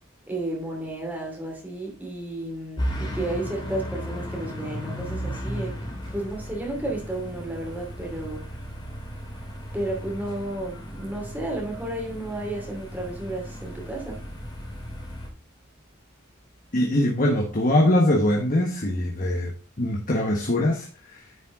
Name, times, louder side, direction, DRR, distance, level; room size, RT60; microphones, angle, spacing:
voice 1, 0.3-5.8 6.1-8.4 9.7-14.3, right 1 dB, 10° right, 2.6 m, -32 dB
sound 1, 2.8-15.3, equal, 25° left, 2.5 m, -35 dB
voice 2, 16.7-19.5 19.8-20.9 21.1-21.2, left 1 dB, 40° left, 1.3 m, -22 dB
9.6 x 5.4 x 3.8 m
head